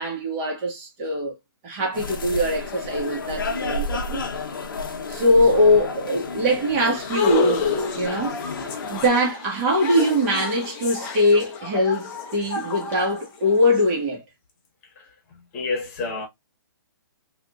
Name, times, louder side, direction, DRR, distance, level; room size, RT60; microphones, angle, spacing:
voice 1, 0.0-1.3 1.6-4.2 5.1-7.7 8.0-8.4 8.9-14.2, left 1 dB, 35° right, 1.4 m, -22 dB
sound 1, 1.9-9.1, left 3 dB, 65° left, 0.8 m, -31 dB
sound 2, 6.9-13.8, left 4 dB, 20° left, 0.6 m, -29 dB
voice 2, 15.0-16.3, left 3 dB, 40° left, 1.1 m, -30 dB
3.5 x 2.5 x 2.3 m
hypercardioid pair, 140°, 12 cm